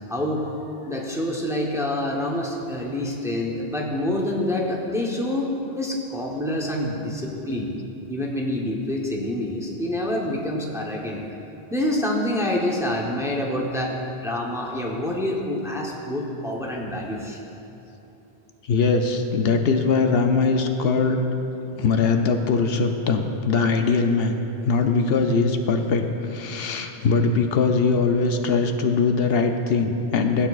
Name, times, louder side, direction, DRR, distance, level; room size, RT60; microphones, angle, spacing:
voice 1, 0.1-0.4 0.9-5.5 5.8-7.7 8.1-11.2 11.7-17.4, left 1 dB, 5° right, -2 dB, 0.8 m, -27 dB
voice 2, 18.6-21.2 21.8-24.4 24.6-30.5, left 4 dB, 75° left, 5 dB, 0.8 m, -21 dB
16.0 x 8.7 x 2.4 m, 2.9 s
omnidirectional pair, 1.1 m